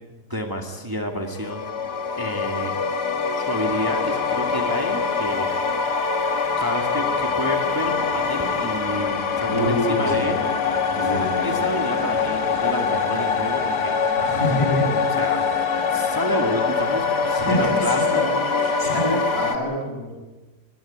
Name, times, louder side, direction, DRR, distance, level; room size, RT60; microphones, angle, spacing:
voice 1, 0.1-1.7 2.2-2.8 3.3-5.5 6.6-10.4 10.9-14.1 15.1-15.5 15.9-18.3, equal, 15° right, 3 dB, 2.1 m, -29 dB
sound 1, 1.3-19.6, left 5 dB, 85° left, 2.1 m, -24 dB
sound 2, 7.2-16.8, left 1 dB, 30° right, 7.6 m, -42 dB
voice 2, 9.5-10.3 11.0-11.5 14.2-14.9 17.4-18.3 18.6-20.1, equal, 65° left, 0 dB, 7.9 m, -26 dB
23.5 x 17.0 x 8.9 m, 1.2 s
omnidirectional pair, 1.7 m